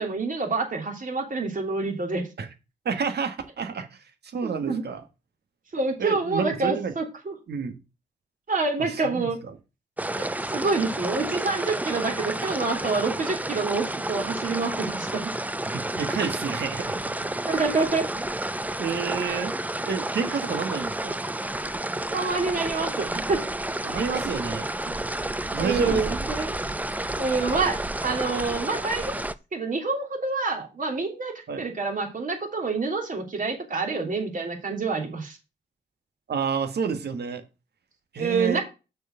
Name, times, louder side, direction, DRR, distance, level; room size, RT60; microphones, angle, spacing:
voice 1, 0.0-2.3 4.4-4.8 5.7-7.3 8.5-9.4 10.2-15.3 17.5-18.1 19.2-19.5 22.1-23.4 25.6-26.5 27.2-29.2 29.5-35.4 38.2-38.6, right 4 dB, 45° right, 3.2 m, -27 dB
voice 2, 2.8-5.0 6.0-6.9 7.5-7.8 8.8-9.5 15.7-17.1 18.8-19.5 19.9-21.2 23.8-25.0 25.5-26.1 31.5-31.6 36.3-37.4 38.1-38.6, right 6 dB, 65° right, 1.5 m, -30 dB
sound 1, 10.0-29.3, right 1 dB, 10° right, 0.6 m, -30 dB
6.4 x 4.6 x 6.6 m
cardioid pair, 65°, 19 cm